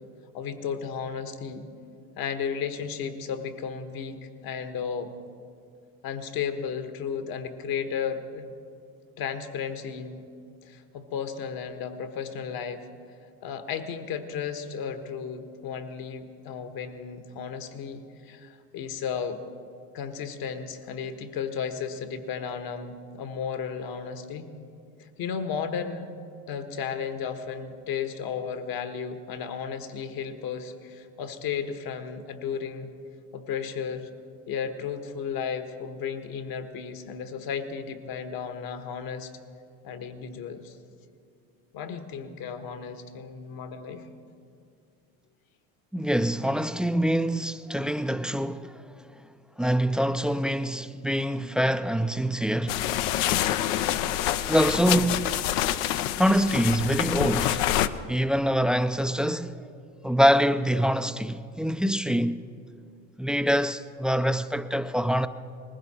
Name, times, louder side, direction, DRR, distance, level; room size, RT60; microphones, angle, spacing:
voice 1, 0.3-1.7 2.2-5.1 6.0-8.5 9.2-10.2 10.6-12.9 13.4-19.4 19.9-24.5 25.0-26.1 26.5-32.9 33.3-34.1 34.5-39.3 39.8-40.8 41.7-44.1, left 7 dB, 60° left, 1.4 m, -34 dB
voice 2, 45.9-48.7 49.6-52.8 54.5-55.3 56.2-57.6 58.1-59.6 60.0-62.4 63.2-65.3, equal, ahead, 0.4 m, -25 dB
sound 1, 52.7-57.9, left 12 dB, 80° left, 0.7 m, -26 dB
19.5 x 15.5 x 4.3 m
hypercardioid pair, 75°, 40 cm